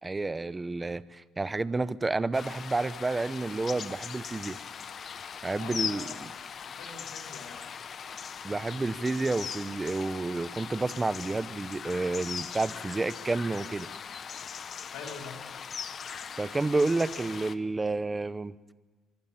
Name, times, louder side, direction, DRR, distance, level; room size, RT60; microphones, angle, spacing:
voice 1, 0.0-4.6 5.4-6.3 8.4-13.9 16.4-18.5, right 3 dB, 15° right, 16 dB, 0.7 m, -30 dB
sound 1, 2.3-17.5, left 7 dB, 40° left, 0.9 m, -40 dB
voice 2, 5.6-6.3 6.7-7.6 14.9-15.4, left 5 dB, 85° left, 1 dB, 4.5 m, -44 dB
24.5 x 24.0 x 7.3 m, 1.2 s
cardioid pair, 135°, 0 cm